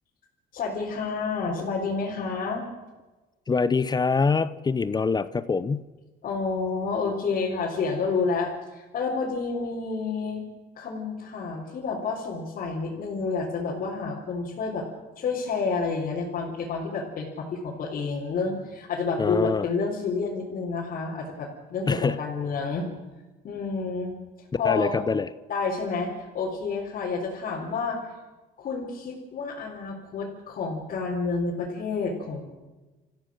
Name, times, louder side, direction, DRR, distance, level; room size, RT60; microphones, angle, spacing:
voice 1, 0.5-2.6 6.2-10.4 10.7-14.9 15.2-22.9 23.4-24.9 25.5-28.0 28.6-32.4, left 4 dB, 55° left, -4 dB, 4.4 m, -29 dB
voice 2, 3.5-5.8 19.2-19.7 21.9-22.2 24.6-25.3, left 4 dB, 25° left, 15 dB, 0.7 m, -24 dB
27.0 x 15.0 x 6.5 m, 1.2 s
cardioid pair, 110°, 17 cm